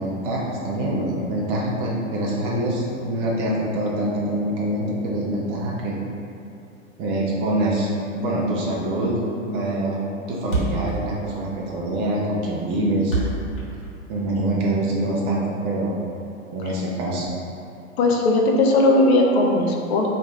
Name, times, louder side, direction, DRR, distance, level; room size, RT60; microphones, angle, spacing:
voice 1, 0.0-6.0 7.0-10.0 10.3-13.2 14.1-15.9 16.5-17.3, right 1 dB, 15° right, -4 dB, 0.3 m, -25 dB
Thump thud, 9.3-9.4 9.6-9.7 9.9-10.0 10.2-10.3 10.4-14.5, right 2 dB, 85° left, 1.1 m, -27 dB
voice 2, 18.0-20.1, left 2 dB, 50° left, 0 dB, 0.7 m, -18 dB
3.0 x 2.5 x 4.1 m, 2.6 s
figure-of-eight pair, 95°, 40 cm